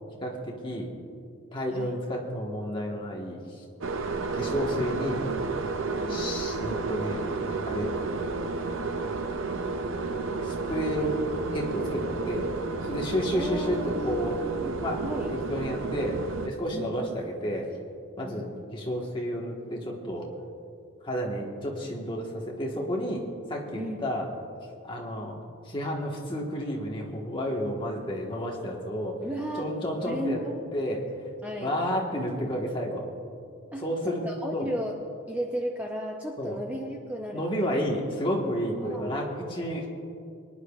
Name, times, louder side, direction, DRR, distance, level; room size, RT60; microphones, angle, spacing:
voice 1, 0.2-0.9 1.5-3.6 4.1-5.3 6.1-7.3 7.6-7.9 10.4-11.2 11.5-12.5 12.8-14.4 14.8-15.0 15.3-17.7 18.2-20.2 21.0-24.3 24.8-25.4 25.6-29.2 29.6-30.4 30.7-31.3 31.6-33.0 33.8-34.2 34.5-34.7 36.4-36.6 37.3-39.9, equal, 20° left, -2 dB, 1.4 m, -31 dB
sound 1, 3.8-16.5, right 3 dB, 65° right, 0.6 m, -31 dB
voice 2, 5.9-6.3 13.3-15.3 16.7-17.1 18.2-18.6 23.7-24.0 29.2-29.7 30.1-30.6 31.4-31.8 33.7-35.0 35.3-37.5 38.8-39.1, equal, 5° right, 0 dB, 0.6 m, -35 dB
23.5 x 10.5 x 2.4 m, 2.6 s
head